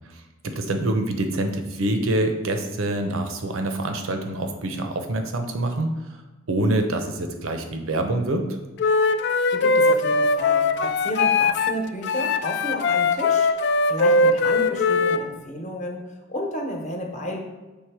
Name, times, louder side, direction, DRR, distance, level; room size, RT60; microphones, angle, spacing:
voice 1, 0.1-6.0 6.5-8.5, right 1 dB, 80° right, 6 dB, 0.7 m, -26 dB
Wind instrument woodwind instrument, 8.8-11.7 12.0-15.2, left 3 dB, 55° left, 0.3 m, -20 dB
voice 2, 9.5-17.4, equal, 35° left, 1 dB, 1.0 m, -32 dB
6.4 x 3.5 x 4.7 m, 1.2 s
head